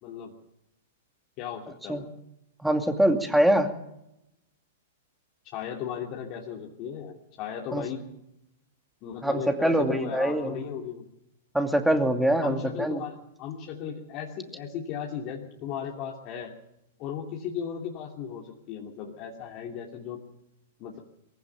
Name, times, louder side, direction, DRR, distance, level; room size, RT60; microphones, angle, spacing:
voice 1, 0.0-0.3 1.4-2.1 5.5-8.0 9.0-11.0 12.4-16.5 17.0-20.2 20.8-21.0, left 8 dB, 40° left, -1 dB, 2.8 m, -36 dB
voice 2, 2.6-3.7 7.7-7.8 9.2-10.6 11.5-13.0, right 1 dB, 5° right, 5 dB, 2.5 m, -24 dB
22.5 x 16.0 x 7.2 m, 0.85 s
figure-of-eight pair, 105°, 0 cm